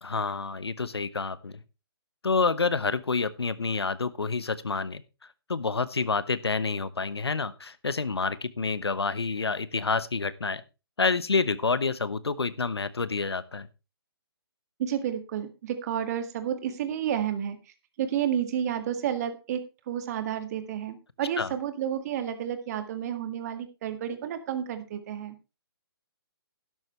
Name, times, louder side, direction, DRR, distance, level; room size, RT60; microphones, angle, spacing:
voice 1, 0.0-1.6 2.2-10.6 11.0-13.7 21.4-21.5, left 4 dB, 85° left, 17 dB, 1.0 m, -28 dB
voice 2, 14.8-17.6 18.0-25.4, right 9 dB, 40° right, 8 dB, 1.9 m, -31 dB
12.0 x 11.0 x 3.2 m, 0.28 s
figure-of-eight pair, 135°, 13 cm